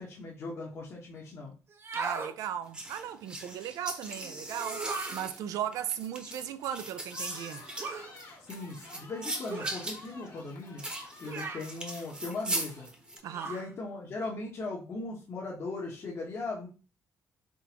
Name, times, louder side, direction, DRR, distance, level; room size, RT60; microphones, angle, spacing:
voice 1, 0.0-1.5 8.5-10.8 11.2-12.9 13.5-16.7, left 3 dB, 50° left, 1.1 m, -38 dB
sound 1, 1.7-2.3 4.6-5.2 7.8-8.1 9.5-9.9 11.2-11.7 13.3-13.7, right 4 dB, 45° right, 0.7 m, -37 dB
voice 2, 1.9-7.6 13.2-13.5, right 10 dB, 80° right, 0.4 m, -37 dB
sound 2, 2.7-13.2, right 1 dB, 15° right, 1.0 m, -39 dB
sound 3, 7.1-14.0, left 3 dB, 85° left, 1.5 m, -52 dB
3.7 x 3.5 x 2.9 m
cardioid pair, 90°, 6 cm